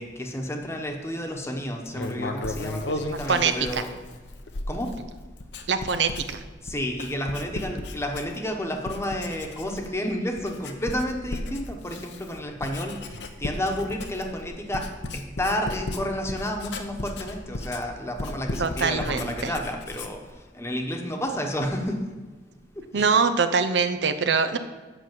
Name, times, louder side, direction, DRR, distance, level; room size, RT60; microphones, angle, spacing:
voice 1, 0.0-3.9 4.7-4.9 6.6-14.9 15.1-22.0 22.7-23.1, left 1 dB, 15° left, 2 dB, 1.1 m, -31 dB
Writing, 1.9-8.6 8.8-10.0 10.4-20.3, left 2 dB, 75° left, 0.9 m, -35 dB
voice 2, 3.1-3.8 5.7-6.4 18.6-19.5 22.9-24.6, right 5 dB, 70° right, 10 dB, 0.6 m, -24 dB
8.0 x 6.3 x 7.4 m, 1.3 s
head